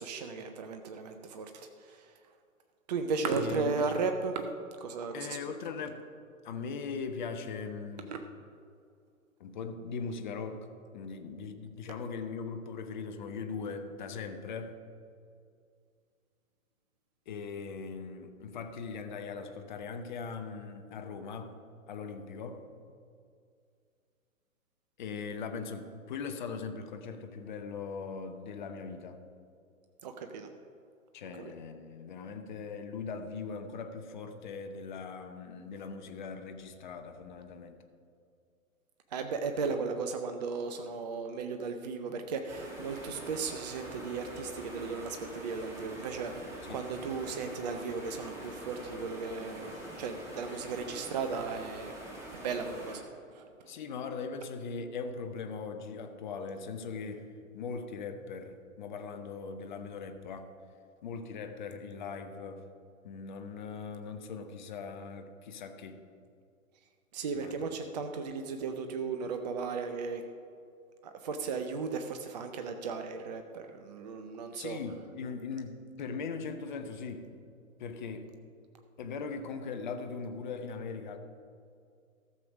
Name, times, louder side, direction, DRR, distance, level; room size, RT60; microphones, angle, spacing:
voice 1, 0.0-2.1 2.9-4.4 4.8-5.4 8.1-8.2 30.0-30.5 31.4-31.5 39.1-49.7 50.0-51.9 52.3-53.0 53.3-53.5 67.1-70.2 71.0-74.8, right 4 dB, 30° right, 6 dB, 0.5 m, -35 dB
voice 2, 3.3-4.0 5.1-6.0 6.4-8.1 9.4-10.7 10.9-14.8 17.3-21.5 21.9-22.6 25.0-29.2 31.1-37.8 39.7-39.8 46.7-46.9 53.7-57.3 57.5-60.5 61.0-62.6 63.0-66.0 67.3-67.7 74.5-77.3 77.8-78.3 79.0-81.2, left 5 dB, 35° left, 7 dB, 0.8 m, -40 dB
sound 1, 42.5-53.0, right 1 dB, 5° right, 1.5 m, -45 dB
14.0 x 6.8 x 4.9 m, 2.3 s
figure-of-eight pair, 115°, 42 cm